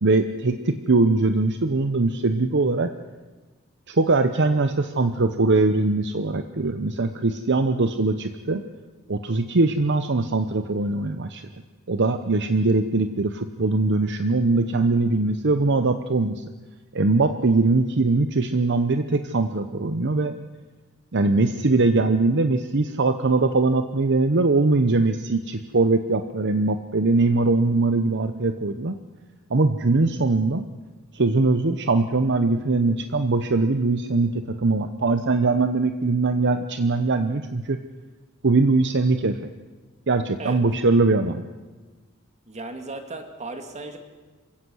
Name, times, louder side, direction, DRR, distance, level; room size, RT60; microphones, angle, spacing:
voice 1, 0.0-2.9 3.9-8.6 9.1-11.4 11.9-16.4 16.9-20.3 21.1-29.0 29.5-30.6 31.1-37.8 38.4-39.4 40.1-41.4, right 3 dB, 55° right, 8 dB, 0.9 m, -21 dB
voice 2, 42.5-44.0, right 2 dB, 35° right, 6 dB, 2.3 m, -35 dB
27.0 x 16.0 x 6.3 m, 1.3 s
head